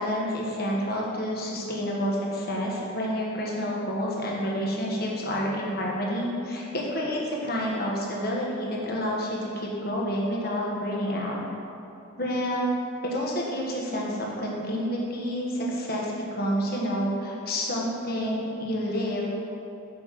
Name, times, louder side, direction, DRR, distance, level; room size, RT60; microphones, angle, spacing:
voice 1, 0.0-11.4 12.2-12.7 13.0-19.3, equal, 50° left, -3 dB, 1.4 m, -29 dB
7.0 x 5.5 x 5.8 m, 2.8 s
head